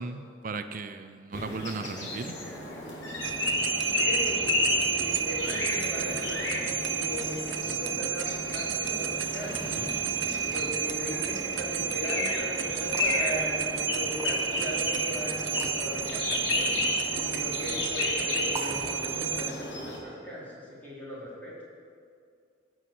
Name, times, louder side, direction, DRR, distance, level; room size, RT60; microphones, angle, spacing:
voice 1, 0.0-2.4, right 3 dB, 45° right, 10 dB, 0.5 m, -36 dB
sound 1, 1.3-20.0, left 2 dB, 75° left, 2.7 m, -33 dB
sound 2, 3.2-19.5, right 7 dB, 80° right, 0.8 m, -31 dB
voice 2, 4.0-9.7 10.5-16.8 17.2-21.5, equal, 10° left, -8 dB, 4.0 m, -38 dB
sound 3, 12.8-13.2 14.1-14.7 15.4-15.8 17.0-17.5 18.5-18.8, right 2 dB, 15° right, 1.4 m, -40 dB
16.5 x 6.4 x 7.7 m, 2.3 s
head